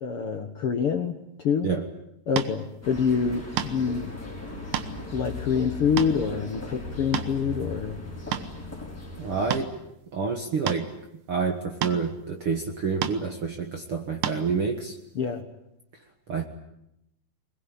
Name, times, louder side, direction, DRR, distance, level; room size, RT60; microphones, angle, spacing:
voice 1, 0.0-1.7 2.3-4.1 5.1-8.0 15.1-15.4, left 6 dB, 60° left, 5 dB, 1.6 m, -26 dB
sound 1, 2.4-2.5 3.6-3.9 4.5-4.9 5.4-5.5 6.0-6.2 6.9-7.5 8.0-8.5 9.5-9.7 10.7-10.9 11.8-12.0 13.0-13.2 14.2-14.4, right 10 dB, 70° right, 2.6 m, -29 dB
sound 2, 2.8-9.6, left 2 dB, 5° left, 4.9 m, -37 dB
voice 2, 9.2-9.8 10.1-10.9 11.3-15.0 16.3-16.4, right 5 dB, 55° right, 4 dB, 1.7 m, -28 dB
22.0 x 20.5 x 10.0 m, 0.85 s
omnidirectional pair, 4.3 m